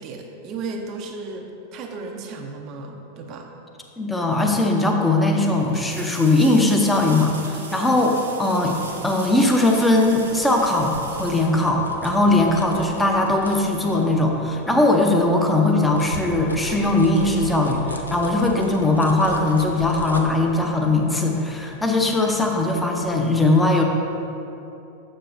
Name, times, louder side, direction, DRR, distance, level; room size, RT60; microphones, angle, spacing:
voice 1, 0.0-3.5, right 3 dB, 40° right, 3 dB, 0.5 m, -34 dB
voice 2, 4.0-23.8, left 2 dB, 5° left, 1 dB, 0.6 m, -20 dB
sound 1, 5.7-12.3 15.2-15.3, right 4 dB, 70° right, 0.8 m, -40 dB
sound 2, 8.4-14.7 15.1-22.6 23.0-23.2, left 2 dB, 80° left, 0.5 m, -37 dB
7.5 x 6.4 x 2.6 m, 2.9 s
figure-of-eight pair, 90°, 0 cm